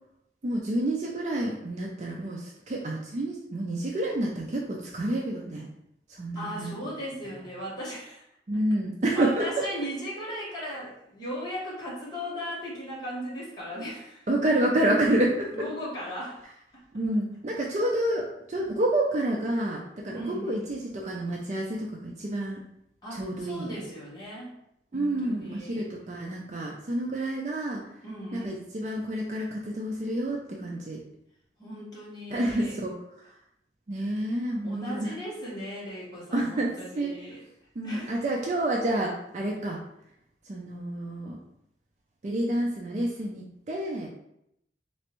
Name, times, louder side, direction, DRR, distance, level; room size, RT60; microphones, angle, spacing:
voice 1, 0.4-5.7 6.2-6.7 8.5-9.4 14.3-15.5 16.9-22.6 23.1-23.8 24.9-27.8 28.3-31.0 32.3-32.9 33.9-35.1 36.3-37.2 37.8-39.8 40.5-41.4 42.2-44.1, right 1 dB, 40° right, -2 dB, 0.4 m, -29 dB
voice 2, 6.3-8.2 9.1-14.2 15.5-16.4 20.1-20.6 23.0-24.5 24.9-25.8 28.0-28.6 31.6-32.8 34.6-37.4 37.8-38.2, equal, 25° left, -7 dB, 1.3 m, -37 dB
3.3 x 3.1 x 3.0 m, 0.78 s
head